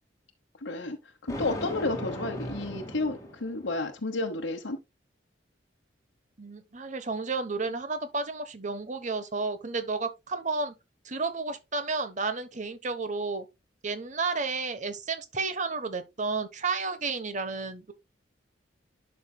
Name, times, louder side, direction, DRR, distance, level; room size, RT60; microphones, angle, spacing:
voice 1, 0.6-1.0 1.2-4.8, left 2 dB, 85° left, 1.0 m, -31 dB
Thunder, 1.3-3.8, equal, 20° left, 1.9 m, -37 dB
voice 2, 6.4-10.7 11.0-13.5 13.8-17.9, right 4 dB, 40° right, 1.0 m, -32 dB
11.0 x 5.5 x 2.2 m
head